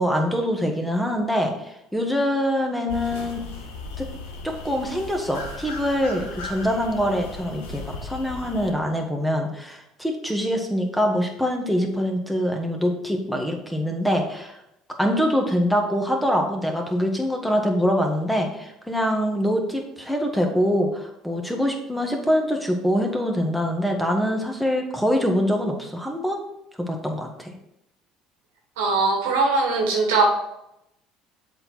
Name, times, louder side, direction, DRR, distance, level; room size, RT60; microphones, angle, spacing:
voice 1, 0.0-3.4 4.0-4.1 4.4-14.6 15.0-26.4 26.8-27.5, equal, 5° left, 2 dB, 1.7 m, -24 dB
sound 1, 2.9-8.7, left 3 dB, 80° left, 1.3 m, -37 dB
voice 2, 28.8-30.3, right 3 dB, 80° right, 1 dB, 1.6 m, -20 dB
7.5 x 4.5 x 4.6 m, 0.83 s
hypercardioid pair, 65°, 0 cm